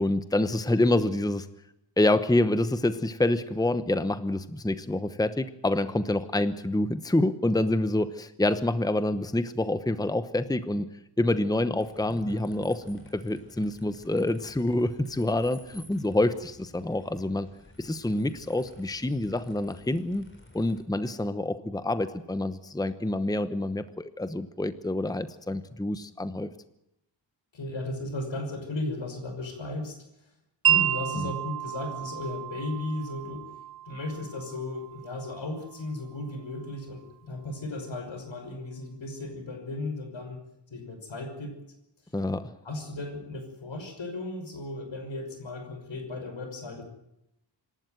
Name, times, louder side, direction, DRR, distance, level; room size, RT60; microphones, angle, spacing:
voice 1, 0.0-1.5 2.0-10.9 11.2-17.5 17.8-20.3 20.5-26.5 31.2-31.3 42.1-42.5, left 1 dB, 10° left, 12 dB, 1.0 m, -27 dB
sound 1, 11.7-20.8, left 2 dB, 25° left, 4.5 m, -53 dB
voice 2, 12.1-12.4 27.5-30.3 30.7-33.5 33.9-40.4 40.7-41.5 42.6-46.8, left 2 dB, 80° left, 5 dB, 6.0 m, -35 dB
Wind chime, 30.6-36.7, right 11 dB, 50° right, 1.1 m, -31 dB
26.5 x 12.5 x 9.2 m, 0.83 s
wide cardioid pair, 110°, 45 cm